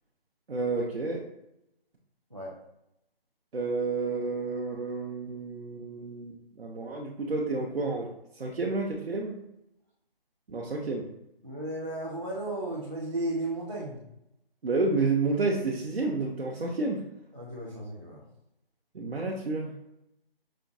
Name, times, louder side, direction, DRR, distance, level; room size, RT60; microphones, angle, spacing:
voice 1, 0.5-1.2 3.5-8.1 8.4-9.4 10.5-11.1 14.6-17.0 18.9-19.7, right 3 dB, 75° right, -2 dB, 0.7 m, -30 dB
voice 2, 11.4-14.0 17.3-18.2, right 1 dB, 30° right, -5 dB, 0.4 m, -34 dB
5.0 x 2.2 x 2.5 m, 0.82 s
figure-of-eight pair, 165°, 30 cm